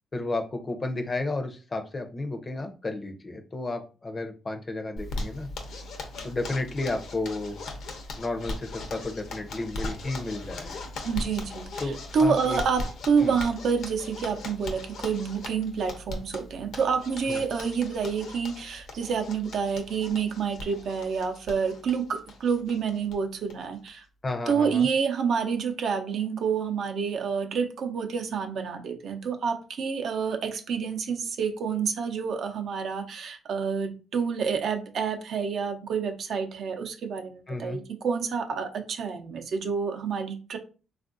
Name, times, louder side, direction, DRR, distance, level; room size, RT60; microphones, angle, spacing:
voice 1, 0.1-5.5 6.2-7.6 8.2-10.9 11.8-12.6 13.2-13.4 17.3-17.4 24.2-24.9 37.5-37.8, left 2 dB, 30° left, 0.6 m, -32 dB
Zipper (clothing), 5.0-23.2 23.5-23.6 23.9-24.0 24.3-24.7, left 2 dB, 70° left, 0.7 m, -39 dB
voice 2, 11.0-11.8 12.1-24.0 24.5-40.6, right 6 dB, 65° right, 0.5 m, -28 dB
3.5 x 2.4 x 2.5 m
cardioid pair, 90°, 0 cm